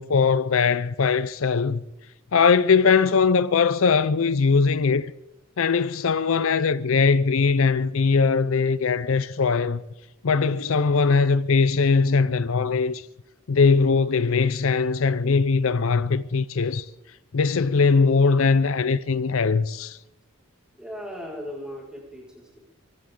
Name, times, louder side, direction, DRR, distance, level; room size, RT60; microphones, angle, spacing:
voice 1, 0.0-1.8 2.3-5.1 5.6-9.8 10.2-13.1 13.5-16.9 17.3-20.0, left 5 dB, 70° left, 0.5 m, -20 dB
voice 2, 20.7-22.6, equal, 5° right, 5.0 m, -37 dB
23.5 x 15.5 x 3.8 m
head